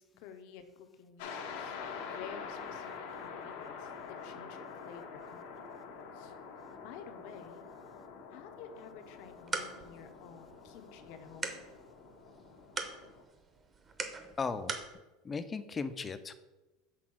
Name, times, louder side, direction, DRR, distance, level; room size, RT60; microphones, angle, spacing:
voice 1, 0.0-1.8 2.1-2.9 3.2-3.9 4.2-5.4 5.8-5.9 6.1-6.3 6.8-7.7 8.3-11.6, left 7 dB, 60° left, 8 dB, 0.8 m, -51 dB
sound 1, 1.2-13.2, left 5 dB, 85° left, 1.2 m, -46 dB
sound 2, 9.1-14.9, right 4 dB, 20° right, 0.7 m, -43 dB
voice 2, 14.4-14.7 15.2-16.3, left 4 dB, 15° left, 11 dB, 0.4 m, -36 dB
6.0 x 3.8 x 6.1 m, 1.1 s
cardioid pair, 165°, 0 cm